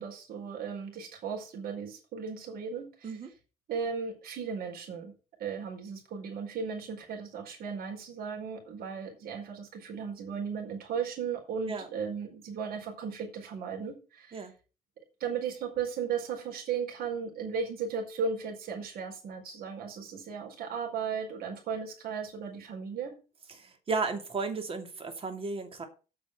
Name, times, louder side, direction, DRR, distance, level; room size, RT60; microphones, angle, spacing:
voice 1, 0.0-3.1 3.7-5.1 5.4-14.4 15.2-23.1, right 6 dB, 65° right, 2 dB, 4.7 m, -36 dB
voice 2, 23.5-25.9, right 4 dB, 35° right, 6 dB, 2.7 m, -34 dB
8.8 x 6.1 x 7.9 m, 0.35 s
cardioid pair, 110°, 17 cm